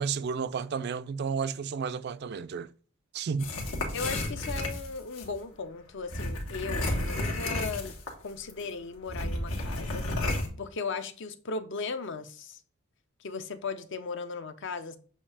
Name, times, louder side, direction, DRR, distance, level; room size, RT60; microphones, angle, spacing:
voice 1, 0.0-2.7 3.1-3.5, right 6 dB, 50° right, 0.3 m, -32 dB
sound 1, 3.4-5.3 6.1-8.2 8.5-8.6 9.1-10.5, left 1 dB, 80° left, 1.6 m, -32 dB
voice 2, 3.9-8.0 8.2-10.0 10.6-12.6 13.2-15.0, left 4 dB, 60° left, 0.6 m, -37 dB
7.4 x 2.7 x 4.8 m
head